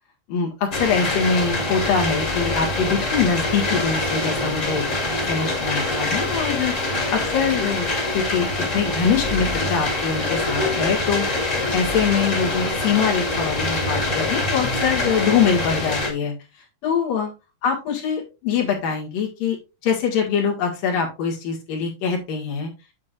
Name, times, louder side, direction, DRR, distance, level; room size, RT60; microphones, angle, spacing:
voice 1, 0.3-4.8 5.3-7.9 8.1-11.3 11.7-16.3 16.8-17.3 17.6-19.6 19.8-22.7, left 6 dB, 80° left, 0 dB, 3.7 m, -23 dB
sound 1, 0.7-16.1, left 2 dB, 30° left, 1.8 m, -24 dB
8.5 x 7.7 x 2.6 m, 0.27 s
omnidirectional pair, 3.9 m